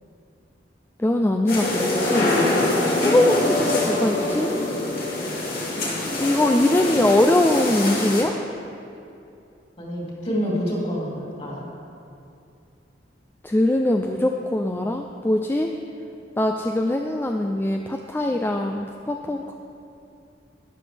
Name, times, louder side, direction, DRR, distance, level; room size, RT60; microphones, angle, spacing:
voice 1, 1.0-2.3 3.0-4.5 6.2-8.3 13.4-15.7 16.4-19.6, left 1 dB, 10° left, 3 dB, 0.3 m, -22 dB
sound 1, 1.5-8.2, left 2 dB, 60° left, 2.0 m, -24 dB
voice 2, 9.8-11.7 19.2-19.4, equal, 35° left, -5 dB, 2.7 m, -28 dB
12.0 x 10.5 x 3.4 m, 2.6 s
head